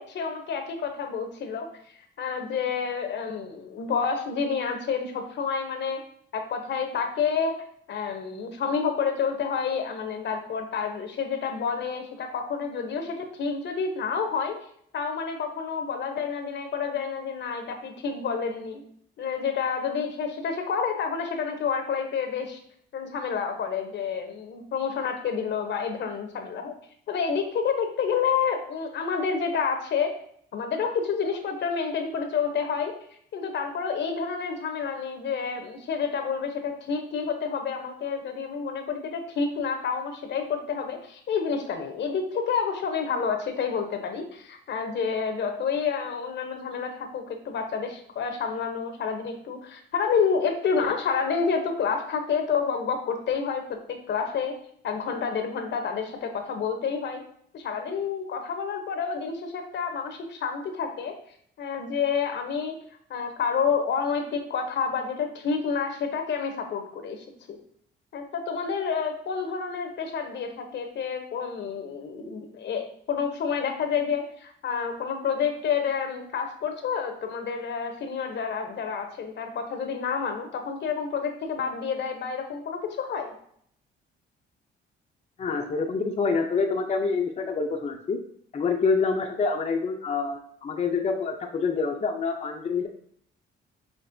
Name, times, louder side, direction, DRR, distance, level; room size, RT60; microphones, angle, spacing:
voice 1, 0.0-1.7 2.2-6.0 6.3-7.6 7.9-14.6 14.9-18.8 19.2-22.6 22.9-26.7 27.1-30.1 30.5-32.9 33.3-54.6 54.8-57.2 57.5-61.1 61.6-62.8 63.1-67.6 68.1-83.3, left 6 dB, 65° left, 5 dB, 0.8 m, -29 dB
voice 2, 85.4-88.2 88.5-92.9, left 4 dB, 35° left, 2 dB, 0.5 m, -26 dB
5.9 x 3.0 x 2.6 m, 0.65 s
cardioid pair, 90°, 20 cm